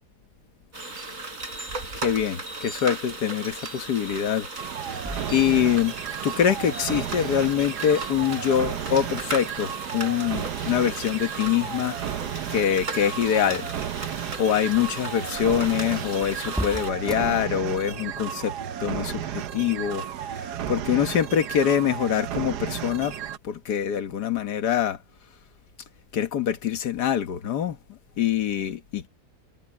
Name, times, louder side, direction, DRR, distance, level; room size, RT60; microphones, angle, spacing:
sound 1, 0.7-16.9, right 3 dB, 55° right, 4.5 m, -37 dB
voice 1, 1.9-4.5 5.3-5.9 6.2-12.0 12.5-13.7 14.4-18.5 18.8-20.0 20.7-23.1 23.4-25.0 26.1-27.8 28.2-29.1, left 9 dB, 85° left, 1.8 m, -24 dB
sound 2, 4.6-23.4, right 10 dB, 85° right, 1.4 m, -33 dB
sound 3, 5.0-18.1, equal, ahead, 1.0 m, -42 dB
omnidirectional pair, 1.7 m